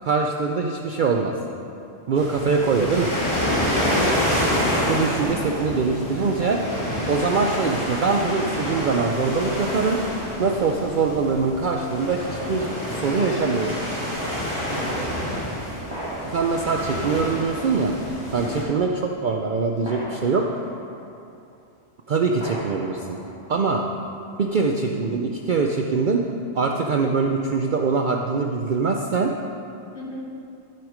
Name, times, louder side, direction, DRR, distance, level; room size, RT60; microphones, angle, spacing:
voice 1, 0.0-1.3 2.1-3.1 4.9-6.6 7.1-10.0 10.4-13.8 16.3-18.0 18.3-20.5 22.1-23.2 23.5-23.8 24.4-26.2 26.5-29.3, right 4 dB, 55° right, 2 dB, 0.5 m, -23 dB
sound 1, 2.2-18.6, equal, 20° left, 2.3 m, -27 dB
voice 2, 5.1-5.6 14.7-15.9 18.3-18.6 29.9-30.3, equal, 55° left, -6 dB, 2.5 m, -39 dB
sound 2, 15.9-17.7 18.2-18.3 19.8-21.4 22.4-23.9, right 1 dB, 20° right, 1.6 m, -38 dB
12.0 x 6.3 x 5.0 m, 2.6 s
omnidirectional pair, 1.3 m